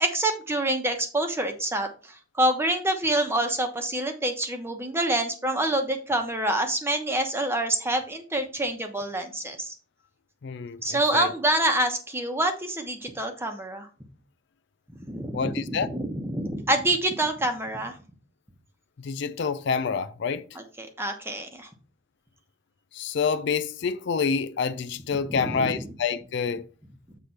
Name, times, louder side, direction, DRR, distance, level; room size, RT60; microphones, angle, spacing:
voice 1, 0.0-9.7 10.8-13.9 15.0-18.0 20.5-21.7 25.3-25.9, right 1 dB, 10° right, 1.0 m, -27 dB
voice 2, 10.4-11.3 15.3-15.9 19.0-20.4 22.9-26.7, left 5 dB, 55° left, 0.4 m, -27 dB
8.0 x 3.3 x 5.7 m
head